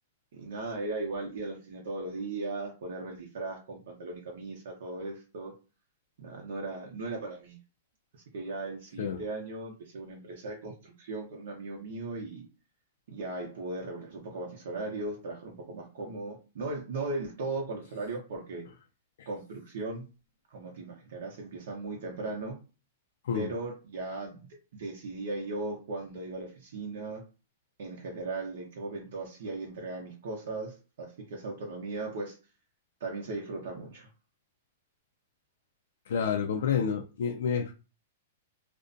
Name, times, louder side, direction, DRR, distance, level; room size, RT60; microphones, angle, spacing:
voice 1, 0.3-5.5 6.2-7.6 8.3-12.5 13.1-18.6 19.3-20.1 20.5-22.6 23.3-24.5 24.7-27.2 27.8-32.4 33.0-34.1, right 2 dB, 70° right, 0.7 m, -37 dB
voice 2, 36.1-37.7, left 7 dB, 75° left, 0.3 m, -29 dB
2.5 x 2.1 x 2.5 m
hypercardioid pair, 155°, 0 cm